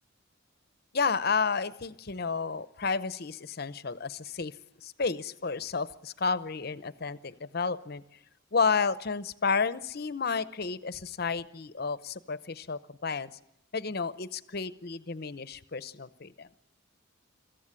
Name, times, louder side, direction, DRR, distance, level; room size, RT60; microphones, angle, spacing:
voice 1, 0.9-4.5 4.8-8.0 8.5-13.3 13.7-16.5, left 5 dB, 55° left, 0.9 m, -31 dB
24.5 x 15.0 x 9.9 m
head